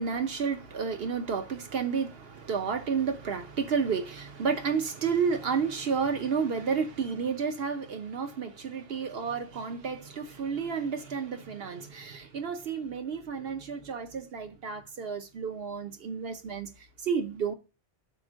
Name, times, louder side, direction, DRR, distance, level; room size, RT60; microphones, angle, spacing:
voice 1, 0.0-16.7 17.0-17.5, right 6 dB, 60° right, 1.1 m, -31 dB
5.9 x 4.4 x 6.3 m
omnidirectional pair, 1.2 m